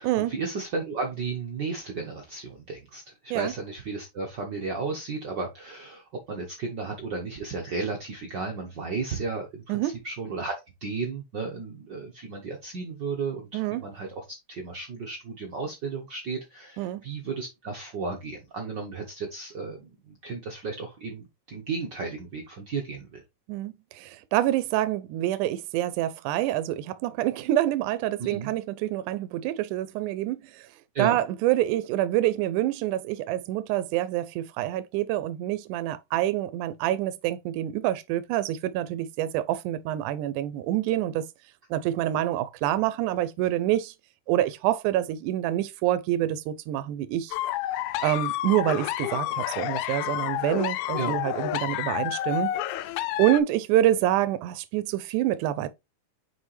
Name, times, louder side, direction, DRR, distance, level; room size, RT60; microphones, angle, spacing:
voice 1, 0.0-10.5 10.8-23.2 28.2-28.5 30.9-31.2 51.0-51.2, right 4 dB, 70° right, 1.0 m, -34 dB
voice 2, 23.5-30.7 31.0-41.3 41.7-43.9 44.3-47.4 48.0-52.5 53.2-55.7, right 13 dB, 85° right, 2.0 m, -26 dB
sound 1, 47.3-53.4, left 14 dB, 80° left, 1.9 m, -29 dB
6.3 x 4.9 x 3.2 m
omnidirectional pair, 3.5 m